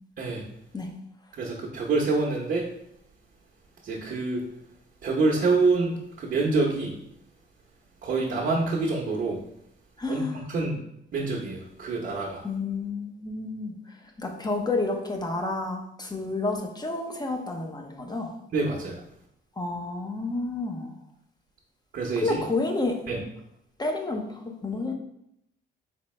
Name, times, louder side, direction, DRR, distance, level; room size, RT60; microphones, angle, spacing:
voice 1, 1.3-2.6 3.8-4.4 5.0-6.9 8.0-9.4 10.1-10.2 10.5-10.8 11.1-12.4 18.5-19.0 21.9-22.4 23.1-23.2, right 3 dB, 50° right, -3 dB, 0.9 m, -26 dB
voice 2, 10.0-10.5 12.4-18.3 19.6-20.9 22.2-23.0 23.8-24.9, left 3 dB, 20° left, 3 dB, 0.8 m, -30 dB
4.4 x 3.3 x 3.2 m, 0.77 s
cardioid pair, 90°, 20 cm